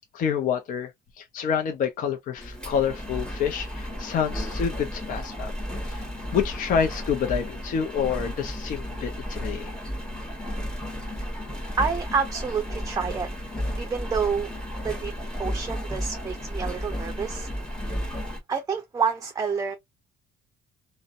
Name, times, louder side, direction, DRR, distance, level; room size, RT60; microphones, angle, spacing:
voice 1, 0.1-0.9 1.2-5.5 5.9-6.0 6.3-9.7, left 7 dB, 50° left, 0.5 m, -28 dB
Engine, 2.4-18.4, equal, 5° left, 1.2 m, -33 dB
voice 2, 11.8-13.3 13.8-14.5 14.8-15.1 15.4-17.5 18.5-19.8, right 6 dB, 20° right, 0.5 m, -28 dB
2.5 x 2.1 x 2.5 m
cardioid pair, 110°, 17 cm